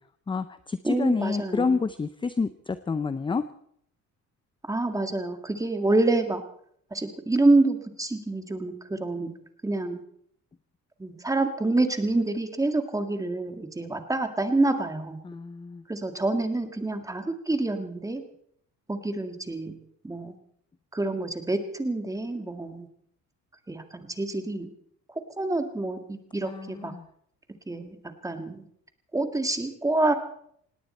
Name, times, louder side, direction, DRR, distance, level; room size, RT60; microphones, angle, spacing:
voice 1, 0.3-3.4 15.2-15.8 26.5-27.1, left 4 dB, 15° left, 12 dB, 0.6 m, -28 dB
voice 2, 0.8-1.8 4.6-6.4 6.9-9.3 9.6-10.0 11.0-15.2 15.9-18.2 18.9-19.7 20.0-20.3 20.9-22.9 23.7-24.7 25.1-26.9 27.7-28.7 29.1-30.1, right 2 dB, 10° right, 7 dB, 1.9 m, -27 dB
18.0 x 18.0 x 4.3 m, 0.67 s
cardioid pair, 120°, 32 cm